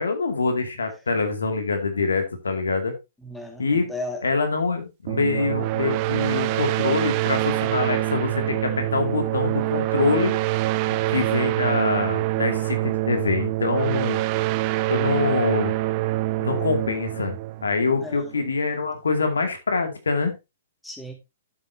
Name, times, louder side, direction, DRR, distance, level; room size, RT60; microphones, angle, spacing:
voice 1, 0.0-2.9 3.6-3.9 4.2-10.3 10.9-14.2 14.9-15.7 16.4-17.4 17.6-20.3, left 4 dB, 70° left, 6 dB, 2.3 m, -25 dB
voice 2, 3.2-4.2 16.5-16.7 18.0-18.3 20.8-21.1, left 2 dB, 5° left, 4 dB, 2.0 m, -35 dB
sound 1, 5.1-18.4, right 18 dB, 35° right, 0.6 m, -25 dB
11.5 x 7.8 x 2.8 m, 0.24 s
figure-of-eight pair, 115°, 0 cm